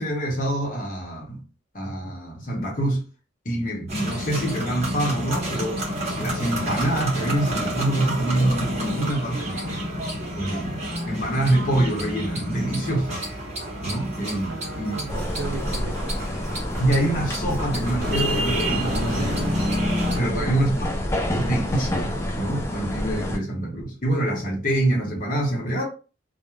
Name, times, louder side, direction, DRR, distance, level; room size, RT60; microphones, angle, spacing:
voice 1, 0.0-1.4 1.7-3.1 3.4-5.8 6.2-9.8 10.3-10.8 11.1-13.3 13.8-15.0 16.8-19.6 20.2-20.7 21.3-25.9, right 1 dB, 45° left, 0.9 m, -25 dB
sound 1, 3.9-20.2, equal, 35° right, 0.9 m, -29 dB
voice 2, 14.5-16.1 20.2-20.6, right 4 dB, 75° right, 0.4 m, -36 dB
sound 2, 15.1-23.4, left 1 dB, 15° left, 0.3 m, -28 dB
2.3 x 2.1 x 3.1 m
head